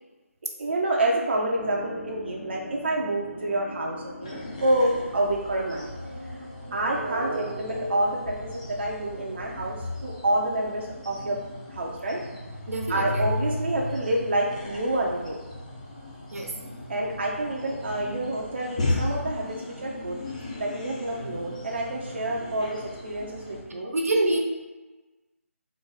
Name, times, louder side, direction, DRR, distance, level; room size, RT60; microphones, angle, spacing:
voice 1, 0.6-5.9 6.7-11.4 11.7-12.2 12.9-15.4 16.9-20.2 20.6-23.9, right 1 dB, 50° right, -2 dB, 0.5 m, -28 dB
sound 1, 1.6-7.3, left 1 dB, 85° left, 1.5 m, -42 dB
sound 2, 4.2-23.6, left 1 dB, 25° left, 0.6 m, -35 dB
voice 2, 12.7-13.3 16.3-16.6 23.9-24.4, right 2 dB, 80° right, 1 dB, 0.8 m, -26 dB
3.8 x 2.5 x 3.9 m, 1.2 s
figure-of-eight pair, 170°, 8 cm